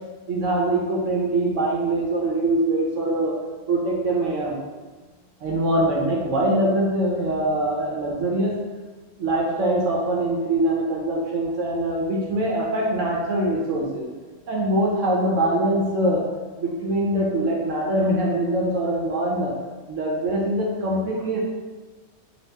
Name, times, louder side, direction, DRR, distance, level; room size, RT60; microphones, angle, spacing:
voice 1, 0.3-3.3 3.7-4.6 5.4-8.5 9.2-14.0 14.5-16.2 16.6-19.5 19.9-21.4, right 1 dB, 65° right, -4 dB, 0.9 m, -23 dB
2.9 x 2.8 x 3.2 m, 1.3 s
omnidirectional pair, 1.6 m